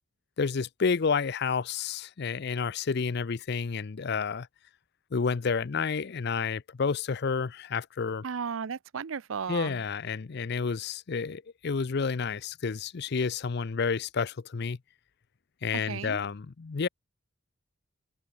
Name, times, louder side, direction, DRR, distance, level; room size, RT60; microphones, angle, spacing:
voice 1, 0.4-4.5 5.1-8.2 9.5-14.8 15.6-16.9, left 5 dB, 55° left, 0.5 m, -30 dB
voice 2, 8.2-9.8 15.7-16.2, right 6 dB, 80° right, 0.6 m, -35 dB
head